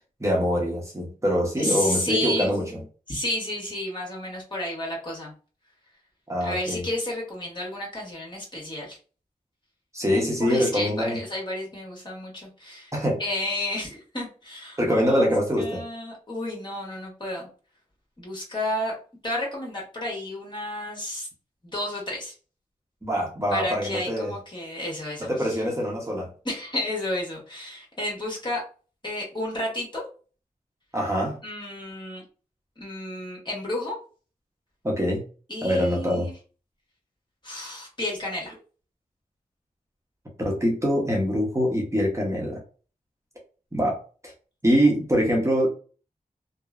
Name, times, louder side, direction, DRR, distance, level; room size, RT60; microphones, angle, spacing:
voice 1, 0.2-2.7 6.3-6.8 9.9-11.2 12.9-13.2 14.8-15.8 23.0-24.3 25.2-26.3 30.9-31.4 34.8-35.2 35.6-36.3 40.4-42.6 43.7-44.0 44.2-44.3 44.6-45.7, equal, 20° right, -2 dB, 0.9 m, -24 dB
voice 2, 1.6-2.5 3.1-5.3 6.4-9.0 10.4-12.9 13.2-14.8 15.0-15.3 15.6-17.5 18.2-19.0 19.2-21.3 21.6-22.3 23.5-25.6 26.4-28.6 29.0-30.0 31.4-32.2 32.8-34.0 35.5-36.3 37.4-38.5, left 1 dB, 30° left, -3 dB, 1.4 m, -31 dB
2.9 x 2.0 x 2.4 m, 0.38 s
cardioid pair, 45°, 15 cm